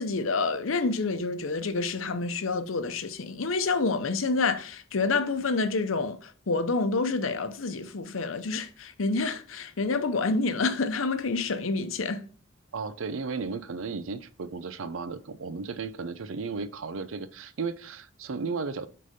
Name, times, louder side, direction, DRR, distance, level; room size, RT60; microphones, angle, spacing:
voice 1, 0.0-12.2, left 3 dB, 85° left, 0.7 m, -28 dB
voice 2, 12.7-18.9, right 4 dB, 80° right, 0.6 m, -34 dB
6.5 x 3.9 x 5.2 m
head